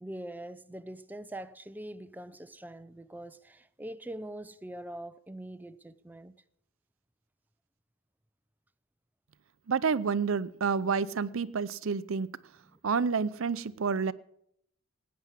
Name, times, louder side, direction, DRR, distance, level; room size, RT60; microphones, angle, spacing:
voice 1, 0.0-6.3 12.7-12.8, right 1 dB, 10° right, 0.5 m, -43 dB
voice 2, 9.7-12.4 12.8-14.1, right 5 dB, 70° right, 0.6 m, -29 dB
17.0 x 9.5 x 7.4 m
head